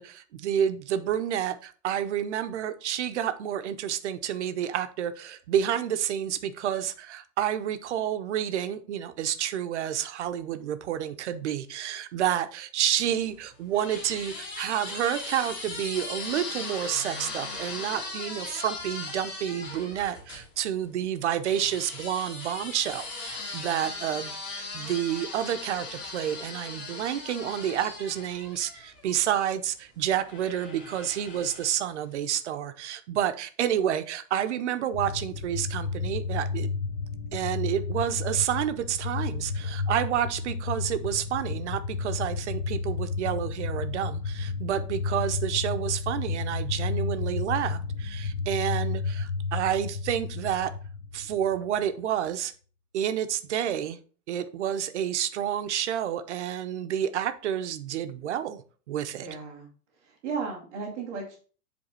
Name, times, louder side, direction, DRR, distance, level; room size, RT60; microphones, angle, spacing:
voice 1, 0.0-36.7 37.3-50.7 51.1-52.5 52.9-54.0 54.3-58.6 58.9-59.3, right 10 dB, 45° right, 10 dB, 0.7 m, -29 dB
sound 1, 13.1-20.5 21.4-29.4 30.2-31.8, left 3 dB, 25° left, 2.6 m, -39 dB
sound 2, 34.9-51.7, left 4 dB, 45° left, 0.7 m, -32 dB
voice 2, 59.2-59.7 60.0-61.4, right 5 dB, 10° right, -8 dB, 0.6 m, -35 dB
8.0 x 3.5 x 5.5 m, 0.40 s
supercardioid pair, 175°, 49 cm